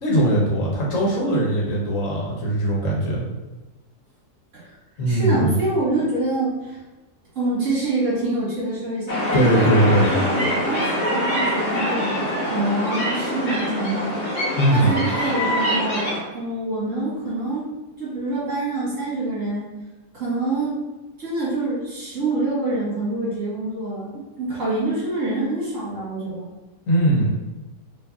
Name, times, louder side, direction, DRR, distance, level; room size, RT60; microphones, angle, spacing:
voice 1, 0.0-3.2 5.0-5.6 9.3-10.1 14.6-15.0 26.9-27.4, right 1 dB, 55° left, -4 dB, 1.4 m, -20 dB
voice 2, 5.1-6.8 7.4-14.2 14.7-17.7 18.0-19.7 20.1-20.8 21.2-26.5, right 2 dB, 50° right, -7 dB, 2.0 m, -26 dB
sound 1, 9.1-16.2, equal, 35° left, 1.0 m, -24 dB
4.5 x 3.1 x 2.8 m, 1.2 s
omnidirectional pair, 1.7 m